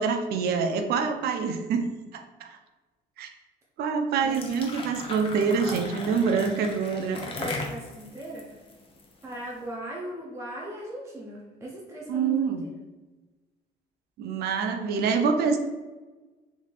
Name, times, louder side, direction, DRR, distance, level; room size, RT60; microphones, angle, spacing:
voice 1, 0.0-1.9 2.1-2.6 3.2-3.3 3.8-7.2 12.1-12.6 14.2-15.6, right 5 dB, 70° right, 6 dB, 0.5 m, -26 dB
sound 1, 4.2-9.4, left 2 dB, 35° left, 0.7 m, -37 dB
voice 2, 4.2-4.6 7.4-8.6 9.2-12.7, right 1 dB, 15° right, -3 dB, 0.5 m, -38 dB
3.5 x 3.0 x 2.4 m, 1.2 s
cardioid pair, 110°, 17 cm